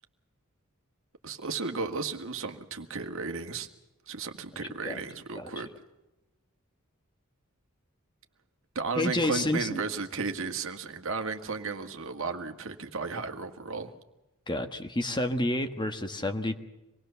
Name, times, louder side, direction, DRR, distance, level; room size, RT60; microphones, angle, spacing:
voice 1, 1.2-3.7 4.1-5.7 8.8-13.9, right 4 dB, 65° right, 6 dB, 1.9 m, -34 dB
voice 2, 4.6-5.0 5.4-5.6 8.9-9.8 14.5-16.6, left 1 dB, 20° left, 7 dB, 1.4 m, -30 dB
26.0 x 20.0 x 7.0 m, 1.0 s
head